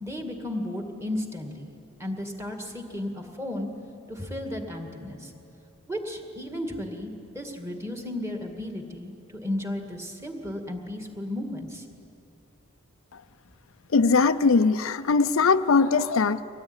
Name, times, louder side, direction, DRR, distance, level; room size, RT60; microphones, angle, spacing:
voice 1, 0.0-1.7 2.0-3.7 4.1-5.3 5.9-11.9, left 1 dB, 10° right, 3 dB, 2.1 m, -34 dB
voice 2, 13.9-16.4, left 4 dB, 70° left, 11 dB, 0.5 m, -21 dB
24.5 x 18.5 x 9.7 m, 2.8 s
head